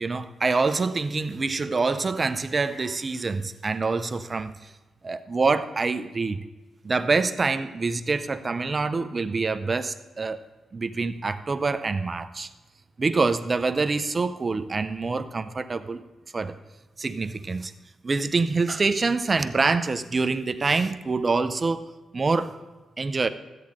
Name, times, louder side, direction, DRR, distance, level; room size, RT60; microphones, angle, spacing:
voice 1, 0.0-4.5 5.0-6.4 6.8-10.4 10.7-12.5 13.0-16.0 16.3-16.5 17.0-17.7 18.0-21.9 22.1-22.5 23.0-23.3, right 4 dB, 35° right, 11 dB, 0.7 m, -25 dB
13.5 x 8.6 x 3.9 m, 1.1 s
cardioid pair, 70°, 0 cm